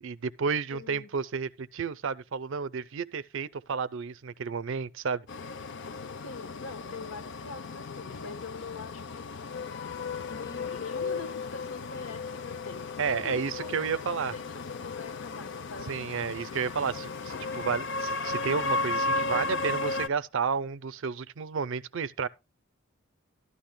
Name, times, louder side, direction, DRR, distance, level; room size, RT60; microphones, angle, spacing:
voice 1, 0.0-5.2 13.0-14.3 15.9-22.3, right 5 dB, 65° right, 0.5 m, -31 dB
voice 2, 0.7-1.1 6.2-9.3 9.7-10.0 10.3-12.9 13.2-16.0, left 4 dB, 80° left, 1.3 m, -43 dB
sound 1, 5.3-20.1, left 3 dB, 60° left, 0.6 m, -35 dB
12.5 x 11.5 x 2.2 m
head